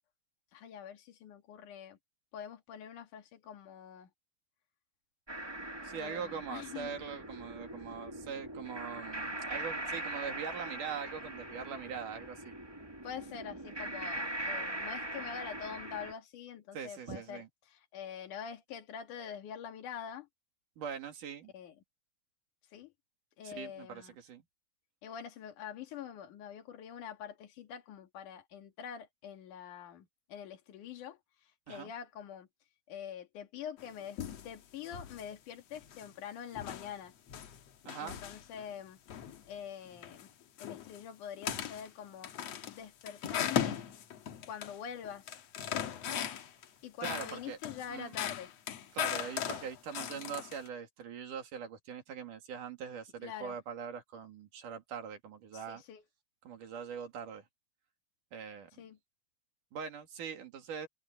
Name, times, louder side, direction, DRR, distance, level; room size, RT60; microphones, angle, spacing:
voice 1, 0.5-2.0 2.3-4.1 5.9-7.0 13.0-20.3 21.5-21.8 22.7-22.9 23.4-24.1 25.0-32.5 32.9-34.2 34.4-37.1 38.0-39.0 39.5-40.3 40.6-42.3 42.7-43.8 44.5-45.4 46.8-48.5 53.2-53.6 55.5-56.1 58.8-59.0, left 8 dB, 80° left, 3.4 m, -45 dB
sound 1, 5.3-16.1, right 1 dB, 15° right, 0.9 m, -41 dB
voice 2, 5.8-12.5 16.7-17.5 20.8-21.5 23.4-24.4 31.7-31.9 37.9-38.2 47.0-47.6 47.9-48.1 48.9-55.8 56.5-57.5 58.3-58.7 59.7-60.9, right 7 dB, 90° right, 4.0 m, -42 dB
sound 2, 33.8-34.5 34.8-35.3 35.7-36.1 36.5-38.7 39.1-39.4 39.8-40.3 40.6-41.0 41.4-41.9 42.2-44.8 45.0-46.6 47.0-50.7, left 9 dB, 60° left, 2.2 m, -38 dB
omnidirectional pair, 3.6 m